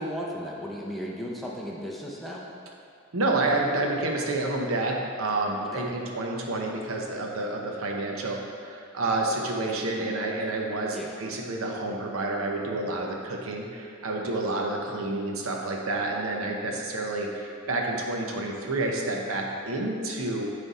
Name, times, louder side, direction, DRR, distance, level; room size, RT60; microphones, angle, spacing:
voice 1, 0.0-2.4 5.7-5.9 10.9-11.1, equal, ahead, -3 dB, 0.6 m, -35 dB
voice 2, 3.1-20.5, right 2 dB, 85° right, 0 dB, 0.8 m, -29 dB
9.3 x 3.3 x 4.1 m, 2.3 s
head